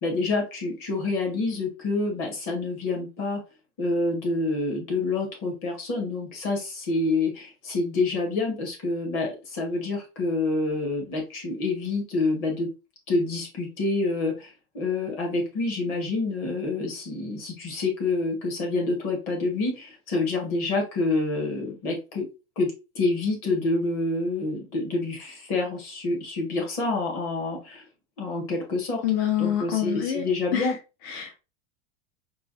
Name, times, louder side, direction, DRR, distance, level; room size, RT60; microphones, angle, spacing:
voice 1, 0.0-3.4 3.8-12.7 13.1-14.5 14.7-22.3 22.6-27.8 28.2-29.0 29.4-30.7, left 3 dB, 40° left, 1.5 m, -27 dB
voice 2, 29.0-30.2 30.5-30.8 31.0-31.4, left 10 dB, 65° left, 0.8 m, -26 dB
4.7 x 2.3 x 2.5 m
supercardioid pair, 165°, 32 cm